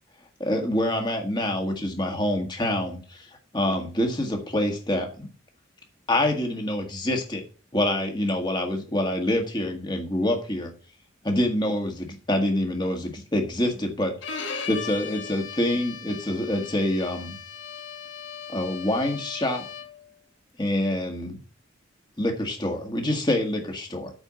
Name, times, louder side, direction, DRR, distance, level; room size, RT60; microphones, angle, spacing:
voice 1, 0.4-3.3 3.5-5.3 6.1-7.4 7.7-10.7 11.2-14.1 14.7-17.4 18.5-19.6 20.6-21.4 22.2-24.1, left 1 dB, 20° left, 3 dB, 1.7 m, -26 dB
Bowed string instrument, 14.2-20.1, left 6 dB, 65° left, 1.3 m, -38 dB
8.9 x 4.5 x 7.4 m, 0.38 s
head